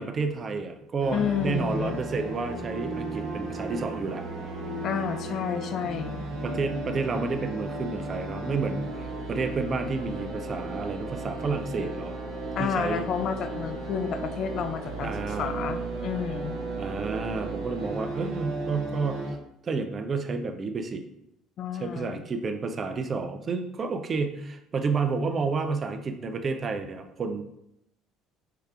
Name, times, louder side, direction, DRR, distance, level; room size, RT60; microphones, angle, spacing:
voice 1, 0.0-4.2 6.4-12.2 12.6-13.1 15.0-15.5 16.8-19.3 19.6-21.0 21.7-27.4, right 4 dB, 40° right, 6 dB, 0.5 m, -30 dB
sound 1, 1.0-19.3, right 2 dB, 60° right, 1.0 m, -35 dB
voice 2, 1.1-2.0 4.8-6.2 12.6-15.1 15.4-16.6 21.6-22.2, left 7 dB, 50° left, 9 dB, 0.4 m, -30 dB
5.6 x 3.3 x 2.4 m, 0.79 s
figure-of-eight pair, 55°, 0 cm